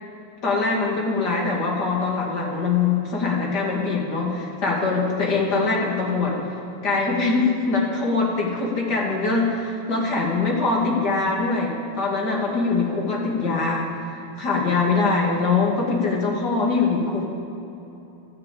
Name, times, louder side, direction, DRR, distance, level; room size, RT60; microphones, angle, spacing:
voice 1, 0.4-6.4 6.8-13.9 14.4-17.2, left 4 dB, 50° left, -2 dB, 3.0 m, -23 dB
13.0 x 11.5 x 8.7 m, 3.0 s
omnidirectional pair, 2.3 m